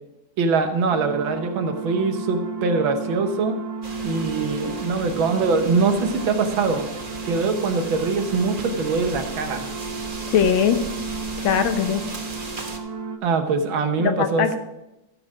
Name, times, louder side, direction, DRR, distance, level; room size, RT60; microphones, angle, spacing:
voice 1, 0.4-3.6 4.0-6.9 7.3-9.7 13.2-14.6, right 4 dB, 80° right, 6 dB, 1.9 m, -23 dB
sound 1, 0.9-13.2, right 4 dB, 50° right, 0.4 m, -33 dB
sound 2, 3.8-12.8, right 2 dB, 30° right, 1.1 m, -36 dB
voice 2, 10.3-10.8 11.4-12.0 14.0-14.6, left 8 dB, 80° left, 8 dB, 1.8 m, -20 dB
14.5 x 6.5 x 4.9 m, 0.93 s
omnidirectional pair, 2.2 m